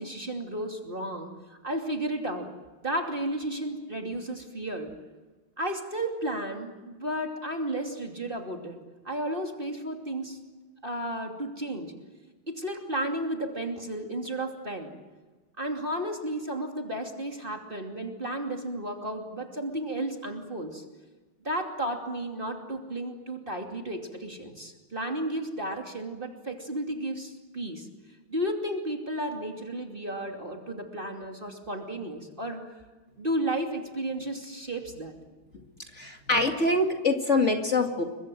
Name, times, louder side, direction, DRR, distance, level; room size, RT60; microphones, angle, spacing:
voice 1, 0.0-2.5 2.8-5.0 5.6-8.8 9.0-10.4 10.8-12.0 12.5-14.9 15.6-20.8 21.4-27.9 28.3-32.6 33.2-35.1, right 1 dB, 25° right, 2 dB, 2.9 m, -33 dB
voice 2, 35.9-38.0, left 2 dB, 35° left, 3 dB, 2.4 m, -24 dB
29.5 x 23.5 x 7.8 m, 1.3 s
omnidirectional pair, 2.2 m